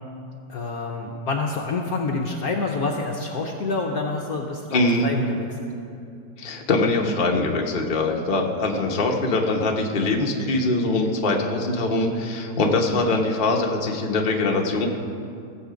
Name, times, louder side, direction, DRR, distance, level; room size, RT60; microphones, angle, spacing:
voice 1, 0.5-5.7, left 3 dB, 60° left, 1 dB, 1.1 m, -27 dB
voice 2, 4.7-5.1 6.4-14.9, left 2 dB, 35° left, 0 dB, 0.9 m, -22 dB
17.0 x 7.5 x 5.1 m, 2.5 s
omnidirectional pair, 2.1 m